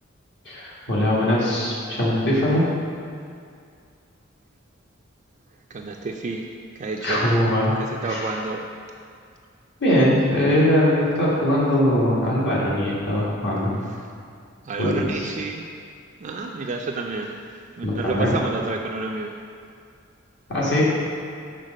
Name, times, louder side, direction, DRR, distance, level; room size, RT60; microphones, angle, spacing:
voice 1, 0.5-2.7 7.0-7.8 8.0-8.3 9.8-13.7 14.8-15.3 17.8-18.3 20.5-20.8, left 1 dB, 60° left, -6 dB, 1.8 m, -21 dB
voice 2, 5.7-6.5 6.8-7.2 7.8-8.6 14.0-14.1 14.7-15.7 16.2-17.4 17.8-19.4, right 3 dB, 40° right, 1 dB, 0.4 m, -30 dB
6.6 x 3.9 x 6.4 m, 2.3 s
head